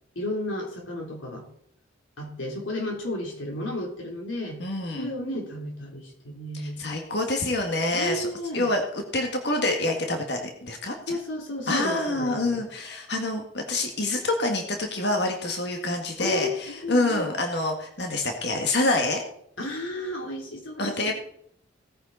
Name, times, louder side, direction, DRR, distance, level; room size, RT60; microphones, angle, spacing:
voice 1, 0.2-1.5 2.2-4.6 5.0-6.8 7.9-8.7 11.1-12.6 16.2-17.3 19.6-21.1, left 1 dB, 80° left, 0 dB, 3.5 m, -33 dB
voice 2, 4.6-5.1 6.5-8.3 8.5-8.8 9.1-11.2 11.7-19.2 20.8-21.1, left 2 dB, 60° left, 3 dB, 1.9 m, -27 dB
18.0 x 9.3 x 4.1 m, 0.69 s
head